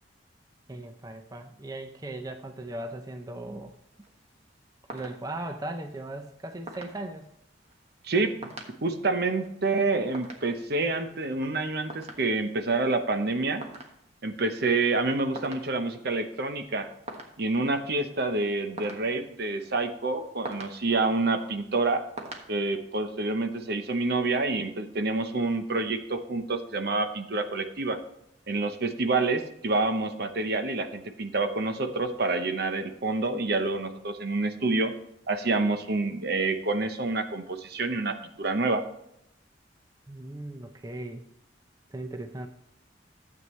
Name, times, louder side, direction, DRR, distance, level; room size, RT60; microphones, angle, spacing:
voice 1, 0.7-3.7 4.9-7.3 40.1-41.2 41.9-42.5, right 1 dB, 20° right, 6 dB, 0.6 m, -38 dB
sound 1, 3.7-22.5, right 2 dB, 35° right, 1.4 m, -48 dB
voice 2, 8.0-8.5 8.8-13.6 14.2-16.9 17.4-22.0 22.5-28.0 28.5-34.9 35.3-38.8, right 3 dB, 60° right, 8 dB, 0.9 m, -28 dB
12.5 x 8.1 x 3.2 m, 0.78 s
head